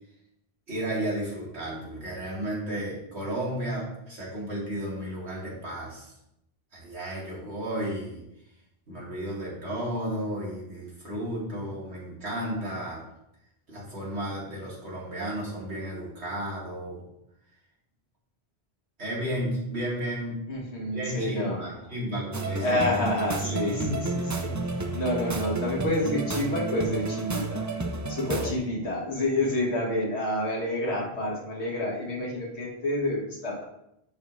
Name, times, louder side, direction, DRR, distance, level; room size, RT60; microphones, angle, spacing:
voice 1, 0.7-6.1 6.7-8.2 8.9-13.0 13.7-17.1 19.0-20.4 20.9-23.0 23.4-24.8 28.3-28.5, right 1 dB, 80° right, -5 dB, 2.5 m, -33 dB
voice 2, 20.5-22.0 22.6-24.5 24.9-27.6 28.1-33.6, left 1 dB, 90° left, -2 dB, 1.9 m, -29 dB
sound 1, 22.3-28.5, right 3 dB, 25° right, 0.4 m, -31 dB
10.5 x 5.0 x 2.6 m, 0.81 s
omnidirectional pair, 1.1 m